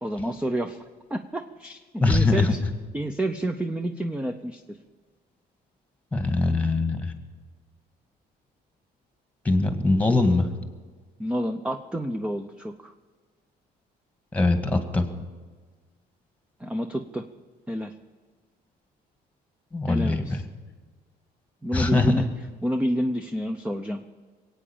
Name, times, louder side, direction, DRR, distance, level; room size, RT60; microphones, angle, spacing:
voice 1, 0.0-0.8 1.1-2.6 2.9-4.8 11.2-12.9 16.6-17.3 17.7-17.9 19.9-20.4 21.6-22.2 22.6-24.0, right 1 dB, 5° right, 7 dB, 0.7 m, -29 dB
voice 2, 2.0-2.5 6.1-7.1 9.4-10.5 14.3-15.1 19.7-20.4 21.7-22.2, left 3 dB, 10° left, 7 dB, 1.8 m, -22 dB
22.0 x 8.9 x 7.1 m, 1.5 s
cardioid pair, 110°, 17 cm